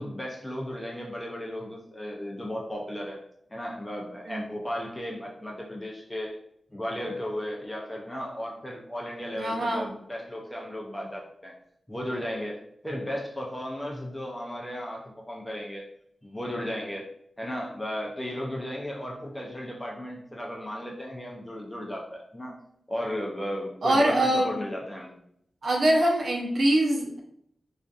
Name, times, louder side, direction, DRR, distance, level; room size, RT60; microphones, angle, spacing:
voice 1, 0.0-3.2 3.5-6.4 6.7-11.5 11.9-15.9 16.2-17.1 17.4-22.6 22.9-25.1, equal, 15° left, -2 dB, 0.4 m, -35 dB
voice 2, 9.4-9.9 23.8-24.5 25.6-27.2, right 1 dB, 70° right, -1 dB, 0.6 m, -23 dB
2.4 x 2.4 x 2.3 m, 0.70 s
wide cardioid pair, 105°, 0 cm